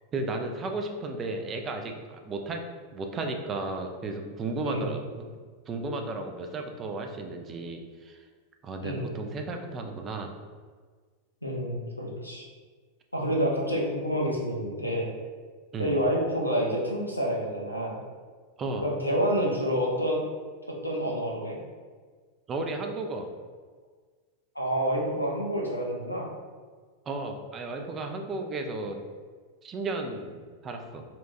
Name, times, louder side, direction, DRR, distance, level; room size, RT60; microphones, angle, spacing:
voice 1, 0.1-2.6 2.9-5.2 5.7-8.3 8.6-10.3 15.7-15.9 18.6-18.9 22.5-23.3 27.1-29.0 29.6-31.0, right 2 dB, 25° right, 4 dB, 0.4 m, -34 dB
voice 2, 11.4-12.4 13.1-15.1 15.8-18.0 18.8-20.2 20.7-21.6 24.5-26.3, equal, 90° left, -2 dB, 0.7 m, -28 dB
4.2 x 2.3 x 2.8 m, 1.5 s
figure-of-eight pair, 90°, 0 cm